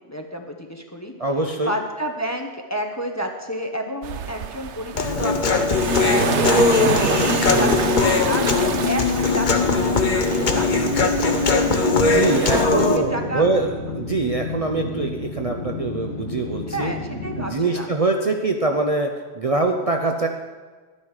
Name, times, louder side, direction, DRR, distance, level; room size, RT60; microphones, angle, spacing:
voice 1, 0.1-1.1 1.6-10.9 11.2-11.6 12.1-13.4 16.7-17.9, equal, 15° left, 3 dB, 0.8 m, -30 dB
voice 2, 1.2-1.7 7.5-7.8 12.0-16.9 17.4-19.1 19.3-20.3, right 3 dB, 40° right, 3 dB, 0.7 m, -23 dB
sound 1, 4.0-12.6, right 8 dB, 85° right, 1.0 m, -29 dB
sound 2, 4.9-17.5, left 4 dB, 85° left, 2.5 m, -32 dB
Human voice, 5.0-13.0, left 3 dB, 45° left, 1.0 m, -20 dB
11.5 x 9.6 x 4.8 m, 1.4 s
omnidirectional pair, 1.1 m